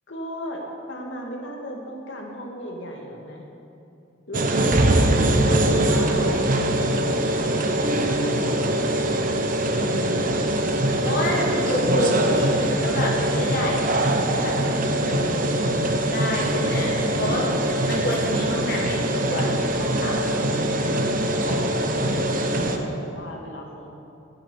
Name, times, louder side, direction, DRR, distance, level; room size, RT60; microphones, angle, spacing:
voice 1, 0.1-3.4 4.3-5.0 5.4-8.6 21.4-24.0, equal, 85° left, 0 dB, 2.3 m, -35 dB
sound 1, 4.3-22.8, right 1 dB, 50° right, 1.0 m, -22 dB
voice 2, 9.7-15.7 16.1-21.0, left 1 dB, 50° left, -2 dB, 1.5 m, -30 dB
10.0 x 9.6 x 8.5 m, 2.7 s
head